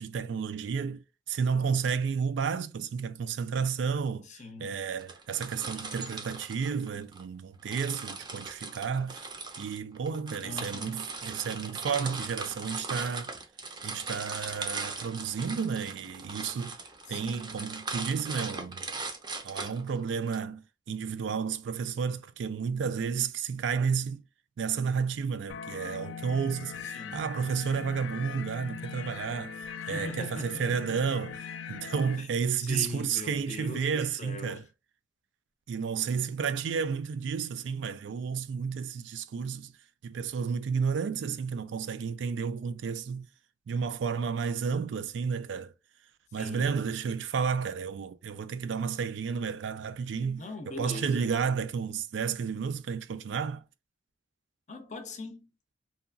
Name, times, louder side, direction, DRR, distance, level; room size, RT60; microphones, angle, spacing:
voice 1, 0.0-4.3 4.6-9.3 9.6-13.3 13.8-16.8 17.1-18.8 19.4-24.2 24.6-29.6 29.9-34.6 35.7-39.7 40.0-43.3 43.7-45.7 46.3-53.6, right 6 dB, 85° right, 0.3 m, -32 dB
voice 2, 4.3-4.8 10.4-11.0 17.1-17.5 26.8-27.3 29.8-30.6 32.2-32.3 32.6-34.6 46.4-46.7 50.4-51.3 54.7-55.5, left 2 dB, 40° left, 0.5 m, -41 dB
sound 1, 5.0-7.2 7.7-20.4, right 3 dB, 25° right, 0.5 m, -39 dB
sound 2, 25.5-32.2, left 7 dB, 90° left, 0.3 m, -41 dB
2.8 x 2.3 x 2.5 m
head